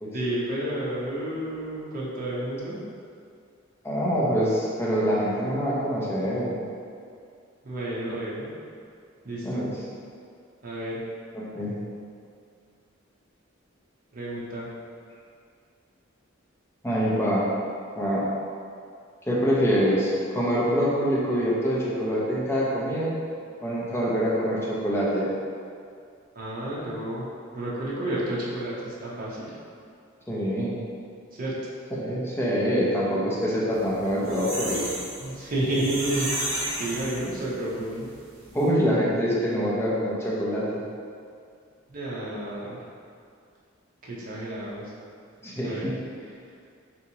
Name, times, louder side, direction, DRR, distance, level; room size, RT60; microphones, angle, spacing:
voice 1, 0.1-2.8 7.6-8.5 9.2-9.7 10.6-11.0 14.1-14.7 26.4-27.3 27.5-29.6 31.4-31.5 35.2-38.1 41.9-42.8 44.0-44.9 45.6-45.9, right 1 dB, 45° right, -7 dB, 0.7 m, -31 dB
voice 2, 3.8-6.6 9.4-9.7 11.3-11.8 16.8-17.5 17.9-18.2 19.3-23.2 23.6-25.3 30.3-30.8 31.9-34.8 38.5-40.8 45.4-45.9, equal, 10° left, -7 dB, 0.6 m, -25 dB
sound 1, 33.8-37.7 38.1-38.2 38.5-38.6, right 1 dB, 80° right, 0.9 m, -32 dB
3.5 x 2.9 x 2.8 m, 2.3 s
head